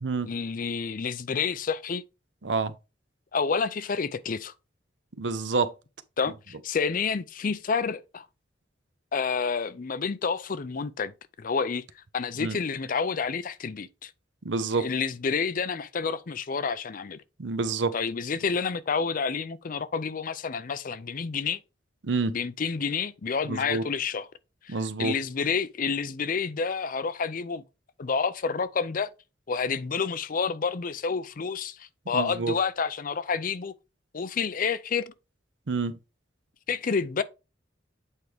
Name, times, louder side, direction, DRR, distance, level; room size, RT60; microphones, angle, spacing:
voice 1, 0.3-2.0 3.3-4.5 6.2-8.3 9.1-11.1 11.4-14.1 14.7-17.2 17.9-21.6 22.3-24.3 24.6-27.6 28.0-29.1 29.5-33.7 34.1-35.1 36.7-37.2, left 5 dB, 45° left, 0.5 m, -29 dB
voice 2, 2.4-2.7 5.2-5.7 12.4-12.6 14.4-14.9 17.4-17.9 22.0-22.3 23.5-23.8 24.7-25.1 32.1-32.5 35.7-35.9, right 4 dB, 70° right, 0.7 m, -27 dB
8.2 x 4.6 x 3.4 m
head